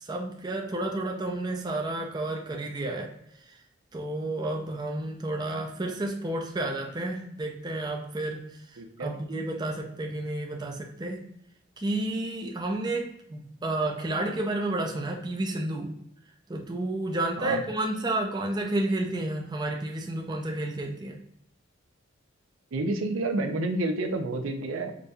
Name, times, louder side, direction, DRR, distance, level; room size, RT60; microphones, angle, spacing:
voice 1, 0.0-3.1 3.5-3.6 3.9-8.4 9.0-11.2 11.8-15.9 16.5-21.2, right 2 dB, 20° right, 1 dB, 0.4 m, -31 dB
voice 2, 8.8-9.1 17.4-17.6 22.7-24.9, right 2 dB, 85° right, 5 dB, 0.5 m, -29 dB
5.0 x 2.6 x 2.3 m, 0.75 s
head